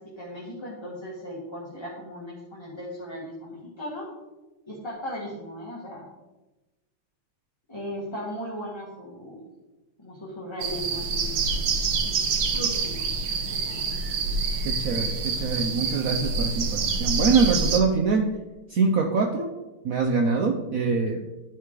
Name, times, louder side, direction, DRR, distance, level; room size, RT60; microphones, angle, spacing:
voice 1, 0.2-4.0 4.6-6.1 7.7-9.4 10.0-11.3 12.0-12.3 12.5-13.0 13.5-13.9, equal, 15° left, -6 dB, 1.8 m, -37 dB
sound 1, 10.6-17.8, right 4 dB, 70° right, 1.7 m, -27 dB
voice 2, 14.6-18.3 18.7-19.5 19.8-21.3, right 4 dB, 85° right, 3 dB, 0.7 m, -24 dB
12.0 x 5.0 x 4.8 m, 1.1 s
omnidirectional pair, 2.4 m